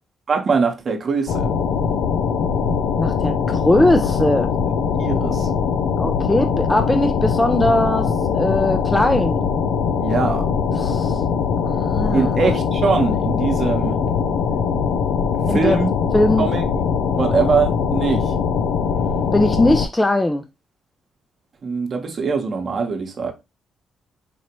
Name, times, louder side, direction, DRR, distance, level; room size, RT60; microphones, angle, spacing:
voice 1, 0.3-1.5 5.0-5.5 10.0-10.5 12.1-14.0 15.5-15.9 16.4-16.6 17.1-18.3 21.6-23.3, right 5 dB, 45° right, 1.0 m, -22 dB
sound 1, 1.3-19.9, left 6 dB, 85° left, 0.4 m, -21 dB
voice 2, 3.0-4.5 6.0-9.4 10.8-11.2 11.7-12.6 15.5-15.8 16.1-16.5 19.3-20.4, left 1 dB, 10° left, 0.4 m, -19 dB
4.5 x 2.8 x 2.9 m
cardioid pair, 90°, 0 cm